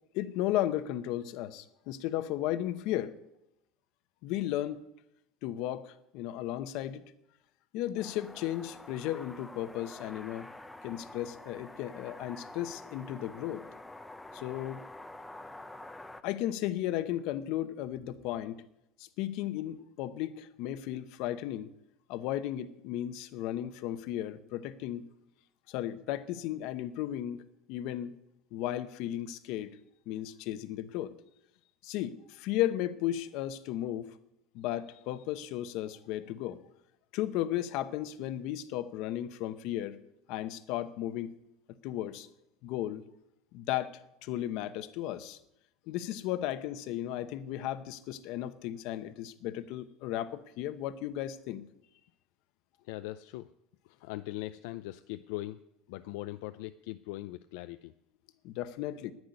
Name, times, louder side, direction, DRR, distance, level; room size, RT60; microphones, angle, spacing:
voice 1, 0.1-3.2 4.2-4.8 5.4-7.0 7.7-10.5 10.8-13.6 14.3-14.8 16.2-18.6 19.0-21.7 22.1-25.0 25.7-27.4 27.7-28.2 28.5-29.8 30.1-31.1 31.8-34.1 34.5-36.6 37.1-40.0 40.3-41.3 41.8-42.3 42.6-43.0 43.5-43.9 44.2-45.4 45.9-51.6 58.4-59.1, left 13 dB, 60° left, 12 dB, 1.0 m, -35 dB
sound 1, 8.0-16.2, left 2 dB, 5° left, 0.7 m, -47 dB
voice 2, 52.8-53.5 53.8-55.6 55.9-57.9, left 17 dB, 75° left, 10 dB, 0.5 m, -40 dB
10.5 x 9.6 x 9.7 m, 0.83 s
cardioid pair, 155°, 0 cm